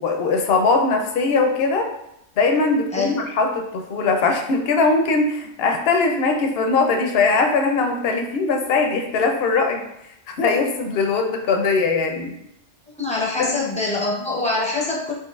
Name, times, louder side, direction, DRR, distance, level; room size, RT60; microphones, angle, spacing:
voice 1, 0.0-1.9 2.4-9.8 10.4-12.3 13.4-13.5, left 4 dB, 65° left, 3 dB, 0.7 m, -20 dB
voice 2, 13.0-15.1, left 3 dB, 10° left, -4 dB, 0.4 m, -24 dB
4.4 x 2.6 x 2.3 m, 0.82 s
omnidirectional pair, 1.3 m